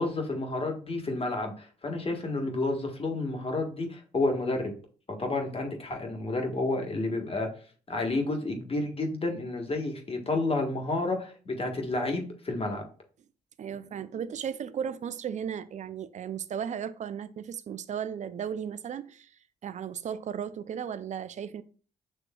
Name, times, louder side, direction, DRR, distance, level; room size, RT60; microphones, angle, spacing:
voice 1, 0.0-4.7 5.2-7.5 7.9-12.8, left 2 dB, 40° left, 1.4 m, -30 dB
voice 2, 13.6-19.3 19.6-21.6, right 8 dB, 50° right, 0.4 m, -35 dB
7.7 x 3.0 x 2.2 m
supercardioid pair, 55°, 16 cm